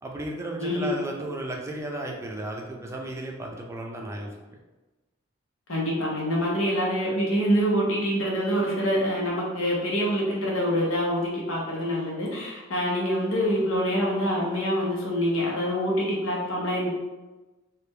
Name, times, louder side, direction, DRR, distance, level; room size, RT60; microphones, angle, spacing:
voice 1, 0.0-4.3, right 1 dB, 15° right, 0 dB, 0.4 m, -34 dB
voice 2, 0.6-0.9 5.7-16.9, equal, 85° left, -4 dB, 1.1 m, -25 dB
3.4 x 2.5 x 3.3 m, 1.1 s
head